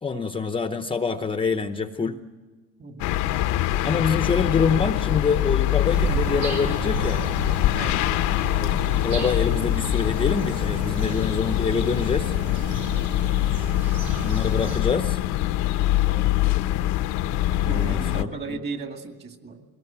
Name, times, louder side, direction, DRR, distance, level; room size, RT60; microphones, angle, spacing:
voice 1, 0.0-2.2 3.8-7.2 8.6-8.7 9.0-12.3 14.2-15.2 17.6-18.6, left 5 dB, 15° left, 9 dB, 0.8 m, -26 dB
voice 2, 2.8-3.2 7.7-8.0 16.0-16.4 17.6-19.6, right 4 dB, 35° right, 5 dB, 2.3 m, -36 dB
sound 1, 3.0-18.2, left 14 dB, 70° left, 0.9 m, -24 dB
sound 2, 5.9-14.8, right 3 dB, 90° right, 5.7 m, -33 dB
21.5 x 19.0 x 8.8 m, 1.3 s
cardioid pair, 120°, 31 cm